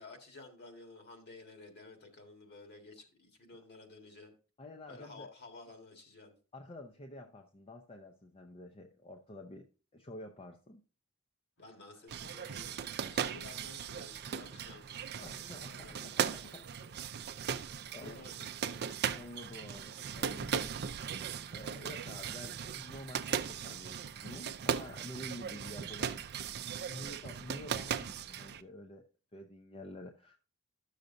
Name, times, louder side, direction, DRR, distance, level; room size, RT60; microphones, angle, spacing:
voice 1, 0.0-4.3 4.9-6.3 11.6-16.6 17.8-18.3 18.6-18.9, left 3 dB, 50° left, 1.8 m, -53 dB
voice 2, 4.6-5.3 6.5-10.8 15.2-16.7 17.5-18.2 19.1-20.7 21.5-30.4, left 1 dB, 25° left, 0.6 m, -49 dB
sound 1, 11.6-25.5, left 1 dB, 70° left, 3.6 m, -67 dB
sound 2, 12.1-28.6, right 7 dB, 50° right, 0.5 m, -38 dB
11.5 x 6.5 x 2.6 m
head